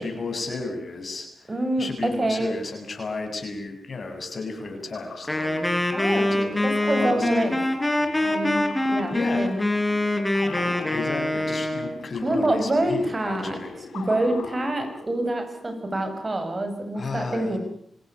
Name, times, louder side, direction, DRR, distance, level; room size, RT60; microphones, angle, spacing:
voice 1, 0.0-5.8 6.1-7.4 9.1-9.5 10.3-13.7 17.0-17.6, left 3 dB, 55° left, 4 dB, 7.7 m, -34 dB
voice 2, 1.5-2.5 5.9-6.4 6.6-7.6 8.2-9.6 12.2-13.6 13.9-17.6, right 1 dB, 35° right, 7 dB, 7.4 m, -26 dB
sound 1, 4.7-15.5, left 4 dB, 85° left, 4.7 m, -41 dB
Wind instrument woodwind instrument, 5.3-11.9, left 1 dB, 20° left, 5.6 m, -24 dB
27.0 x 17.0 x 9.8 m, 0.70 s
supercardioid pair, 45°, 0 cm